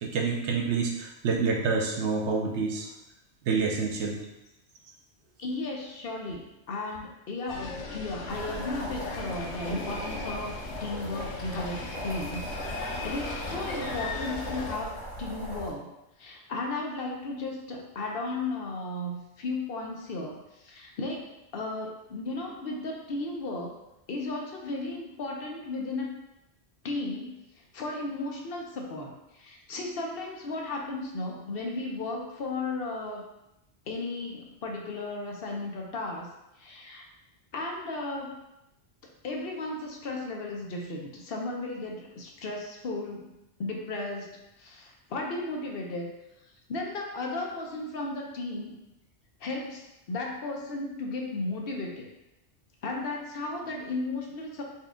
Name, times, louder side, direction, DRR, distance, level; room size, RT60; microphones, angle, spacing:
voice 1, 0.0-2.9 3.5-4.2, right 4 dB, 85° right, 0 dB, 1.0 m, -27 dB
voice 2, 5.4-6.4 6.7-15.9 16.2-23.8 24.1-26.2 26.8-27.3 27.7-33.2 33.9-36.3 36.6-37.0 37.5-38.4 39.2-43.3 43.6-46.1 46.7-48.8 49.4-52.1 52.8-54.6, left 2 dB, 60° left, 0 dB, 0.8 m, -35 dB
sound 1, 7.5-14.7, left 3 dB, 90° left, 0.9 m, -37 dB
sound 2, 8.3-15.7, equal, 45° left, 1.8 m, -39 dB
4.1 x 2.3 x 3.6 m, 0.90 s
omnidirectional pair, 1.1 m